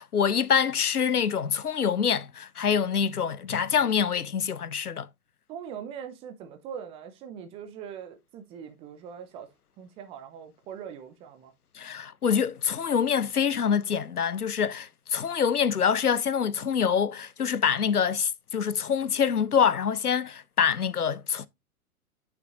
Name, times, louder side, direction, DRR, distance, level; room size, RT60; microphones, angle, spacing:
voice 1, 0.0-5.1 11.7-21.5, left 7 dB, 90° left, 0.7 m, -25 dB
voice 2, 5.5-9.5 9.8-11.5, right 8 dB, 15° right, 0.5 m, -41 dB
9.0 x 6.0 x 2.5 m
figure-of-eight pair, 115°, 44 cm